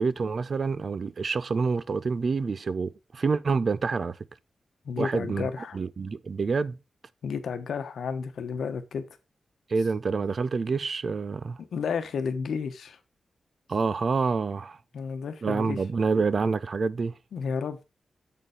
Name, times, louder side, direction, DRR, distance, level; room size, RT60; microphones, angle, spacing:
voice 1, 0.0-4.2 5.0-5.5 5.7-6.8 9.7-11.6 13.7-14.8 15.4-17.1, right 4 dB, 55° right, 0.5 m, -27 dB
voice 2, 4.8-5.8 7.2-9.0 11.6-13.0 14.9-15.8 17.3-17.8, left 6 dB, 85° left, 1.0 m, -32 dB
7.4 x 4.4 x 4.8 m
cardioid pair, 70°, 0 cm